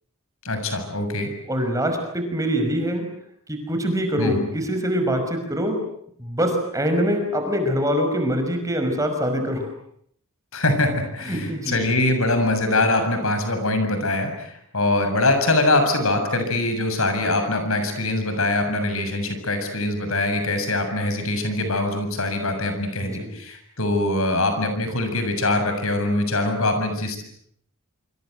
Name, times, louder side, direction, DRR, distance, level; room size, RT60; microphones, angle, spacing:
voice 1, 0.4-1.3 4.2-4.4 10.5-27.2, left 2 dB, 70° left, 7 dB, 7.2 m, -23 dB
voice 2, 1.5-3.1 3.5-5.9 6.2-9.7 11.2-11.8 23.0-23.3, equal, 15° right, 5 dB, 5.5 m, -24 dB
27.5 x 26.0 x 8.0 m, 0.66 s
head